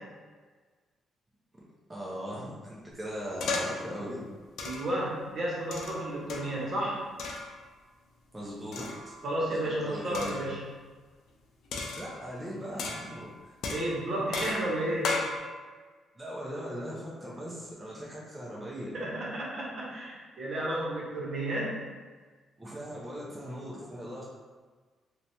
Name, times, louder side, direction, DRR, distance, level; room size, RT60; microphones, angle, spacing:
voice 1, 1.9-4.3 8.3-9.2 9.5-10.4 11.9-13.5 16.2-18.9 22.6-24.3, equal, 15° right, -5 dB, 0.5 m, -39 dB
sound 1, 3.4-3.9 4.6-5.0 5.7-6.6 7.2-7.5 8.7-9.2 10.1-10.5 11.7-12.4 12.8-13.3 13.6-15.4, left 3 dB, 75° left, 0.4 m, -35 dB
voice 2, 4.6-7.0 9.2-10.6 13.7-15.2 18.9-21.8, right 1 dB, 55° right, -5 dB, 0.8 m, -32 dB
2.8 x 2.2 x 2.6 m, 1.4 s
cardioid pair, 90°, 0 cm